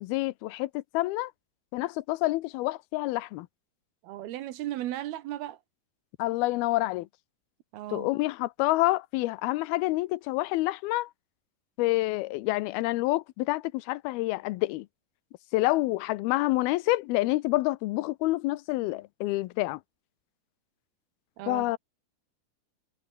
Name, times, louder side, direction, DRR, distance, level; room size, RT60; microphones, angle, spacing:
voice 1, 0.0-1.3 1.7-3.5 6.2-7.1 7.9-11.1 11.8-14.9 15.5-19.8 21.5-21.8, left 19 dB, 85° left, 2.3 m, -28 dB
voice 2, 4.0-5.6 7.7-8.1 21.4-21.7, right 14 dB, 70° right, 2.8 m, -36 dB
omnidirectional pair, 5.1 m